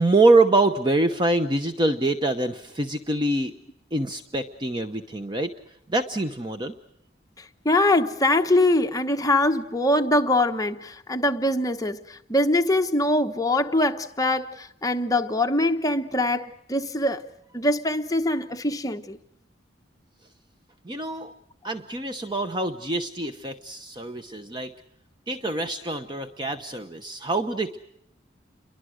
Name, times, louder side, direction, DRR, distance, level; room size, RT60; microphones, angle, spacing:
voice 1, 0.0-3.5 3.9-5.5 5.9-6.7 20.8-21.3 21.6-24.7 25.3-27.8, right 2 dB, 25° right, 0.9 m, -24 dB
voice 2, 7.4-17.2 17.5-19.2, left 1 dB, 20° left, 1.1 m, -23 dB
29.5 x 23.0 x 6.4 m
head